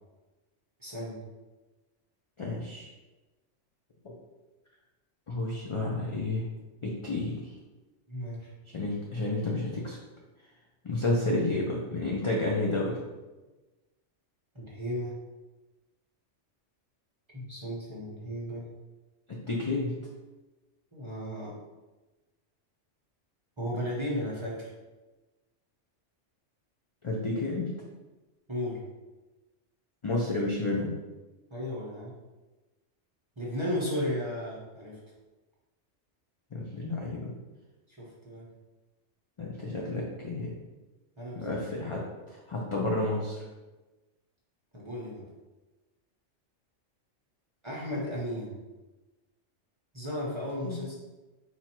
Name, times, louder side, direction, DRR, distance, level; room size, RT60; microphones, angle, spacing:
voice 1, 0.8-1.2 8.1-8.5 14.5-15.2 17.3-18.7 20.9-21.6 23.6-24.7 28.5-28.8 31.5-32.1 33.4-35.0 37.9-38.5 41.2-41.6 44.7-45.2 47.6-48.5 49.9-51.0, equal, 25° right, -5 dB, 0.9 m, -34 dB
voice 2, 2.4-2.9 4.0-4.1 5.3-6.5 6.8-7.5 8.7-10.0 10.8-13.0 19.3-20.0 27.0-27.7 30.0-30.9 36.5-37.3 39.4-40.5 41.3-43.4 50.6-50.8, left 2 dB, 40° left, -3 dB, 0.4 m, -31 dB
4.3 x 2.7 x 4.4 m, 1.2 s
omnidirectional pair, 1.3 m